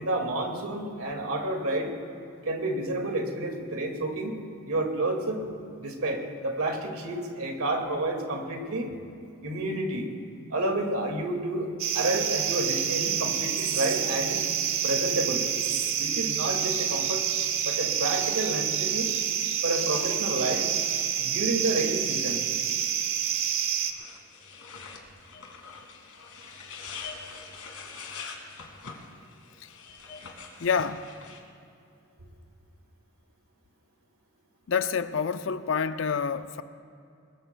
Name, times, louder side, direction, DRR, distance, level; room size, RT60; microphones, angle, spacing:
voice 1, 0.0-1.9 2.4-4.4 4.7-5.4 5.8-8.9 9.4-10.1 10.5-14.4 14.8-15.4 16.0-17.2 17.6-19.1 19.6-20.7 21.2-22.4, right 2 dB, 85° right, 3 dB, 2.0 m, -30 dB
sound 1, 11.8-23.9, right 9 dB, 65° right, 1.0 m, -28 dB
sound 2, 23.9-31.4, left 5 dB, 85° left, 2.0 m, -43 dB
voice 2, 30.6-31.0 34.7-36.6, left 6 dB, 60° left, 11 dB, 0.5 m, -27 dB
22.0 x 20.5 x 2.3 m, 2.5 s
head